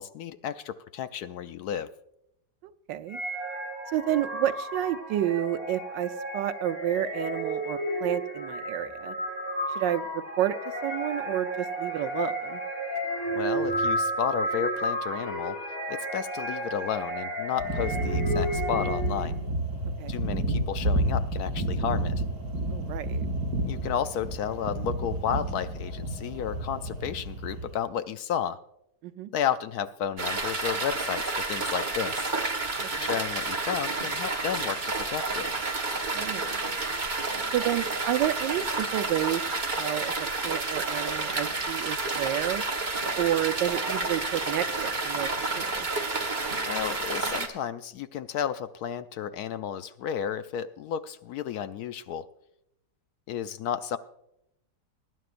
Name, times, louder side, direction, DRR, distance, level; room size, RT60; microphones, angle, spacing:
voice 1, 0.0-1.9 13.3-15.6 15.9-19.4 20.1-22.1 23.6-28.6 29.3-32.3 33.0-35.5 46.7-52.2 53.3-54.0, left 9 dB, 70° left, 11 dB, 1.0 m, -32 dB
voice 2, 2.9-3.2 3.9-9.1 9.8-10.6 10.8-12.6 20.0-20.1 22.7-23.2 29.0-29.3 33.0-33.1 36.1-36.5 37.5-39.4 39.8-42.6 43.2-45.3 45.6-45.9, right 12 dB, 85° right, 12 dB, 1.4 m, -30 dB
sound 1, 3.1-19.3, right 1 dB, 15° left, 2.3 m, -32 dB
sound 2, 17.6-27.7, right 1 dB, 70° right, 5.9 m, -30 dB
sound 3, 30.2-47.5, right 3 dB, 30° right, 1.3 m, -30 dB
22.0 x 11.0 x 2.5 m, 0.81 s
omnidirectional pair, 1.9 m